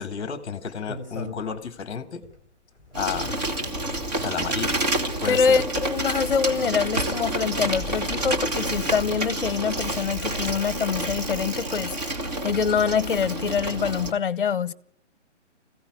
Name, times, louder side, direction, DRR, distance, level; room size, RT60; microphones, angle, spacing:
voice 1, 0.0-2.2 2.9-3.3 4.2-4.8 5.2-5.6, left 7 dB, 20° left, 1.8 m, -32 dB
sound 1, 0.7-1.8 2.2-12.5 13.1-13.8, left 2 dB, 15° right, 4.3 m, -43 dB
Bicycle, 2.9-14.1, right 1 dB, 35° right, 1.8 m, -29 dB
voice 2, 5.3-12.1 12.4-14.7, left 6 dB, 45° left, 0.8 m, -25 dB
22.0 x 16.0 x 9.6 m
hypercardioid pair, 175°, 37 cm